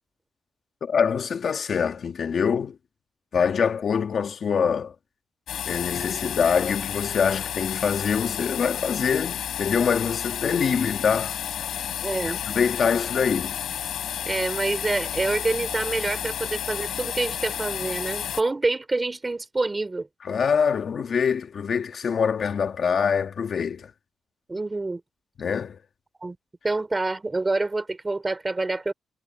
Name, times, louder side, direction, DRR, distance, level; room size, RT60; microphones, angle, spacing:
voice 1, 0.8-2.8 3.3-4.9 5.7-11.3 12.2-13.6 20.2-23.9 25.4-25.8, left 6 dB, 45° left, 1.8 m, -24 dB
sound 1, 5.5-18.4, left 9 dB, 70° left, 4.2 m, -31 dB
voice 2, 12.0-12.4 14.3-20.1 24.5-25.0 26.2-26.4 26.6-28.9, right 2 dB, 15° right, 3.5 m, -27 dB
wide cardioid pair, 165°, 0 cm